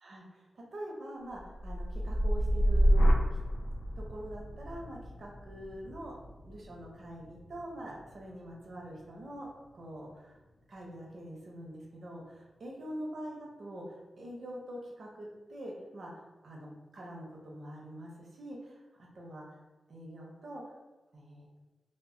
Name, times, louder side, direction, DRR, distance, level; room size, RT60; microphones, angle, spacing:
voice 1, 0.0-3.1 4.0-6.2 6.5-9.5 9.7-10.4 10.7-19.6 19.9-20.6 21.1-21.6, right 1 dB, 55° right, -2 dB, 0.6 m, -44 dB
sound 1, 1.3-9.4 9.8-10.3, equal, 75° left, 0.4 m, -30 dB
2.1 x 2.1 x 3.6 m, 1.2 s
wide cardioid pair, 155°, 0 cm